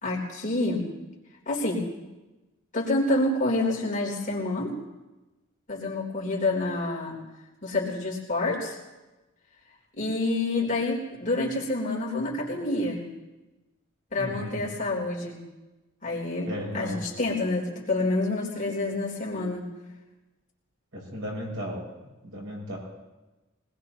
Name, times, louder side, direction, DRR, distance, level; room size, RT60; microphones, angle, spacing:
voice 1, 0.0-0.9 1.5-1.9 2.7-4.7 5.7-7.2 7.6-8.8 10.0-13.1 14.1-15.4 16.0-16.5 16.7-19.7, left 2 dB, 40° left, -4 dB, 3.7 m, -28 dB
voice 2, 14.2-14.6 16.4-17.1 20.9-21.8 22.2-22.8, equal, 70° right, -3 dB, 7.2 m, -35 dB
23.0 x 20.0 x 3.0 m, 1.1 s
head